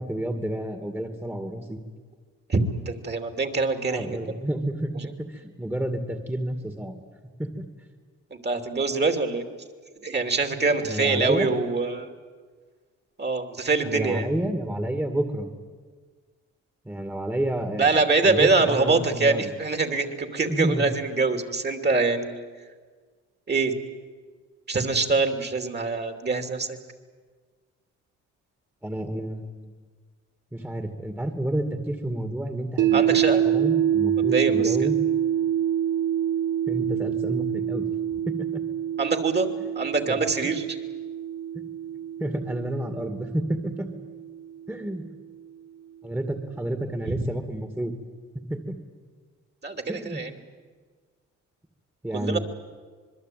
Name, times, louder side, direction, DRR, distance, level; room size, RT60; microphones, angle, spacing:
voice 1, 0.0-1.8 3.9-4.9 5.3-7.0 7.4-7.6 10.8-11.5 13.8-15.5 16.9-17.9 18.2-19.5 20.5-20.9 28.8-29.7 30.5-33.0 33.4-35.0 36.7-37.9 38.3-38.6 40.1-40.2 41.5-41.7 42.2-43.9 44.7-45.0 46.0-47.9 48.5-48.8 49.9-50.2 52.0-52.4, right 1 dB, 5° right, 6 dB, 2.3 m, -30 dB
voice 2, 2.5-4.4 5.0-5.1 8.3-9.5 10.0-12.1 13.2-14.3 17.8-22.4 23.5-23.7 24.7-26.8 32.9-33.4 34.2-34.8 39.0-39.5 39.7-40.8 47.1-47.2 49.6-50.3 52.1-52.4, right 3 dB, 35° right, 7 dB, 3.0 m, -24 dB
sound 1, 32.8-44.9, right 10 dB, 80° right, 3.0 m, -26 dB
26.0 x 21.5 x 9.3 m, 1.5 s
cardioid pair, 90°, 30 cm